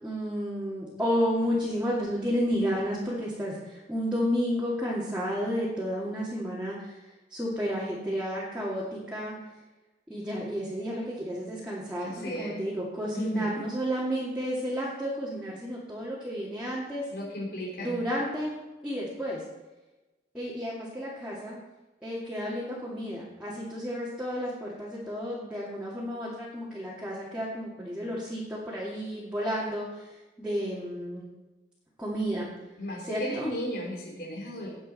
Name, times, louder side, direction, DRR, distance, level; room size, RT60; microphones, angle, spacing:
voice 1, 0.0-7.0 7.3-9.3 10.1-12.1 12.4-17.0 17.8-18.5 18.8-19.4 20.3-21.6 22.0-31.2 32.0-32.5 33.1-33.5, equal, 5° right, -8 dB, 2.3 m, -31 dB
voice 2, 12.0-12.6 13.1-13.6 17.1-18.0 32.8-34.7, equal, 70° left, -4 dB, 3.6 m, -35 dB
18.0 x 7.5 x 4.3 m, 1.1 s
head